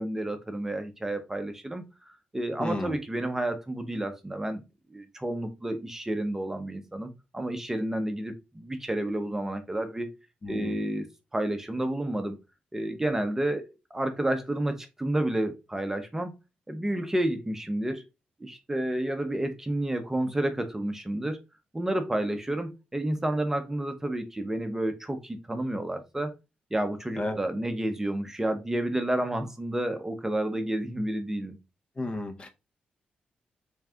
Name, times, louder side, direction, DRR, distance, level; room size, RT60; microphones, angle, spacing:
voice 1, 0.0-1.8 2.3-4.6 4.9-10.1 10.5-11.1 11.3-12.4 12.7-16.3 16.7-18.0 18.4-21.4 21.7-26.3 26.7-31.6, right 1 dB, 15° right, 0.7 m, -30 dB
voice 2, 2.6-2.9 10.4-10.8 27.2-27.4 32.0-32.5, left 2 dB, 35° left, 0.7 m, -32 dB
3.5 x 3.2 x 3.5 m
cardioid pair, 100°, 3 cm